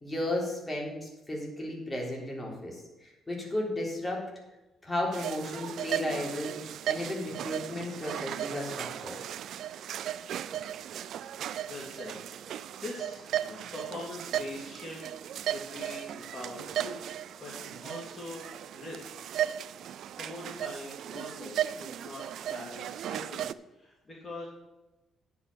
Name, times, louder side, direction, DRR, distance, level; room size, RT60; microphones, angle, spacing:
voice 1, 0.0-4.3 4.8-6.5 6.9-9.2, left 1 dB, 15° left, -2 dB, 3.6 m, -34 dB
sound 1, 5.1-23.5, right 10 dB, 70° right, 0.4 m, -36 dB
voice 2, 11.7-12.1 12.8-15.0 15.5-17.0 17.4-18.5 18.7-19.1 19.5-19.8 20.2-22.2 22.5-24.5, left 2 dB, 35° left, -3 dB, 2.6 m, -43 dB
9.9 x 6.0 x 6.8 m, 1.0 s
cardioid pair, 90°, 0 cm